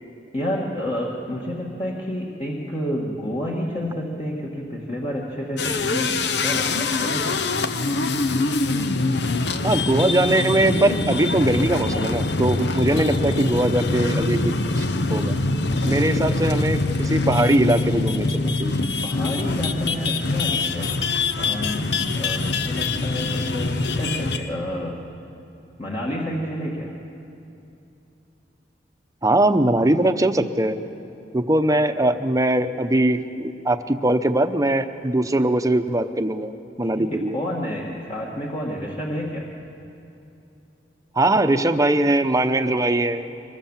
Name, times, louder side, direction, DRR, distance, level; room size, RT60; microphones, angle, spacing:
voice 1, 0.3-7.5 12.9-13.4 15.7-16.5 19.0-21.0 21.4-25.0 25.8-26.9 36.8-39.5, equal, 35° left, -4 dB, 2.1 m, -29 dB
sound 1, 5.6-24.5, left 3 dB, 75° left, 0.9 m, -24 dB
voice 2, 9.6-15.3 15.8-18.8 29.2-30.8 31.3-36.5 36.8-37.4 41.1-43.2, right 1 dB, 20° right, 9 dB, 0.8 m, -21 dB
24.0 x 20.5 x 7.4 m, 2.9 s
head